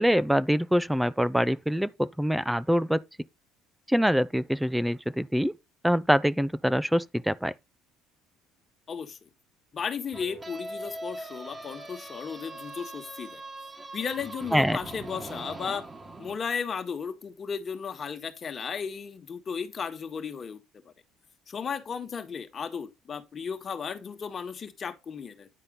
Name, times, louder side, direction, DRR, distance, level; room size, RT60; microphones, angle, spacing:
voice 1, 0.0-3.0 3.9-5.5 5.8-7.5 14.5-14.8, equal, 5° right, 0.4 m, -24 dB
voice 2, 8.9-9.2 9.7-13.4 13.9-15.8 16.2-20.9 21.5-25.5, left 6 dB, 35° left, 1.5 m, -35 dB
sound 1, 10.1-16.4, right 2 dB, 20° right, 1.4 m, -41 dB
9.9 x 4.2 x 5.2 m
cardioid pair, 105°, 0 cm